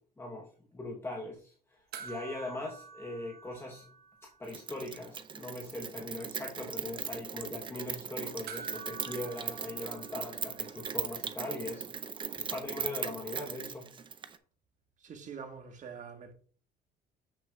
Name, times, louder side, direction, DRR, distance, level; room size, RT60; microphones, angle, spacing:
voice 1, 0.2-3.9 4.2-11.8 12.3-13.9, left 2 dB, 15° left, 1.1 m, -41 dB
sound 1, 1.9-4.6 4.8-4.9 8.5-11.1 13.2-13.3, right 5 dB, 65° right, 0.9 m, -48 dB
Rain, 4.5-14.4, right 6 dB, 30° right, 0.5 m, -39 dB
voice 2, 15.0-16.3, right 6 dB, 45° right, 1.3 m, -45 dB
7.0 x 6.2 x 2.3 m
cardioid pair, 110°, 17 cm